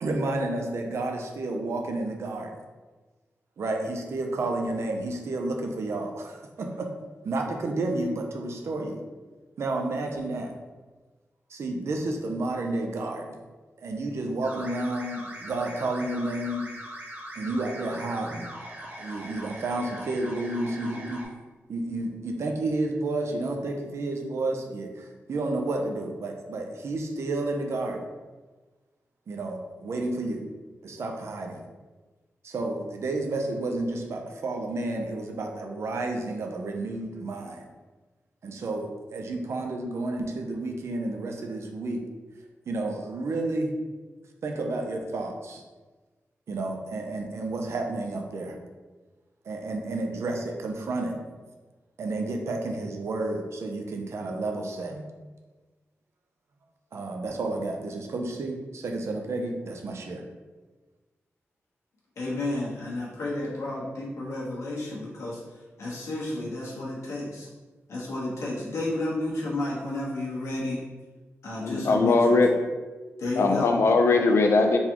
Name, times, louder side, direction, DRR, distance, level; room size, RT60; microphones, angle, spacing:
voice 1, 0.0-2.6 3.6-6.9 7.2-9.0 9.6-10.5 11.5-13.4 13.8-16.7 17.4-18.5 18.9-21.3 21.7-28.1 29.3-30.4 30.8-31.6 32.4-37.7 38.4-42.0 42.7-43.8 44.4-45.6 46.5-48.6 49.4-51.2 52.0-55.0 56.9-60.2, right 2 dB, 65° right, 2 dB, 0.6 m, -31 dB
sound 1, 14.4-21.3, right 1 dB, 45° right, 1.2 m, -41 dB
voice 2, 62.2-65.4 65.8-67.5 67.9-70.8 71.4-72.5 73.2-73.7, left 2 dB, 90° left, -5 dB, 1.2 m, -31 dB
voice 3, 71.6-72.5 73.4-74.8, left 3 dB, 65° left, 4 dB, 0.5 m, -20 dB
4.0 x 3.6 x 2.9 m, 1.3 s
wide cardioid pair, 145°, 5 cm